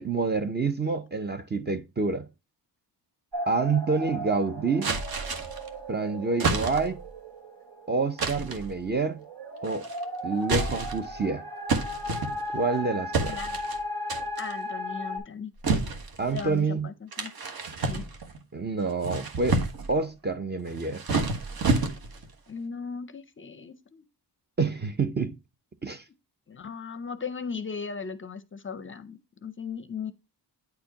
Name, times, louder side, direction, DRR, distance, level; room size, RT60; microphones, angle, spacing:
voice 1, 0.0-2.3 3.5-4.9 5.9-7.0 7.9-9.2 9.6-9.8 10.2-11.5 12.5-13.4 16.2-16.9 18.5-19.6 19.9-21.0 24.6-25.4 25.8-26.0, right 4 dB, 25° right, 0.5 m, -27 dB
sound 1, 3.3-15.2, left 1 dB, 75° right, 2.9 m, -36 dB
sound 2, 4.8-5.7 6.4-7.0 8.2-8.7 9.6-10.0 10.4-11.1 11.7-12.7 13.1-13.8 14.1-14.5 15.6-16.5 17.1-18.4 18.9-19.9 20.7-22.3, right 3 dB, 60° right, 1.4 m, -29 dB
voice 2, 13.2-13.6 14.4-15.5 16.3-17.3 17.9-18.0 22.5-24.0 26.5-30.1, left 5 dB, 30° left, 0.5 m, -37 dB
9.4 x 4.6 x 2.8 m
wide cardioid pair, 165°, 41 cm